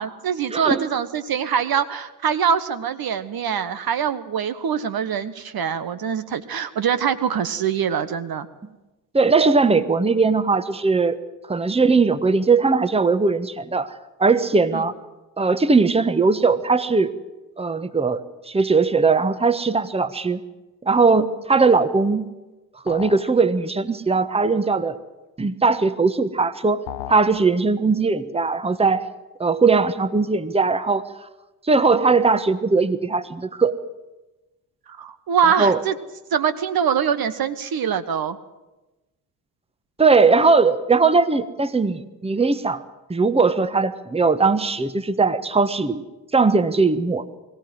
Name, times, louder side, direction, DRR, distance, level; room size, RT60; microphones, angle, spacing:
voice 1, 0.0-8.5 14.7-14.8 34.9-35.9 36.3-38.4, right 7 dB, 45° right, 12 dB, 1.3 m, -23 dB
voice 2, 0.5-0.8 9.1-11.2 11.5-13.9 14.2-14.9 15.4-17.1 17.6-20.4 20.8-22.3 22.8-25.0 25.4-26.8 27.1-29.0 29.4-31.0 31.6-33.8 35.6-35.8 40.0-42.8 43.1-46.0 46.3-47.2, right 4 dB, 10° right, 13 dB, 1.3 m, -19 dB
sound 1, 22.9-23.3 26.9-27.3, left 13 dB, 70° left, 1.0 m, -34 dB
22.0 x 16.5 x 8.0 m, 1.1 s
figure-of-eight pair, 45°, 49 cm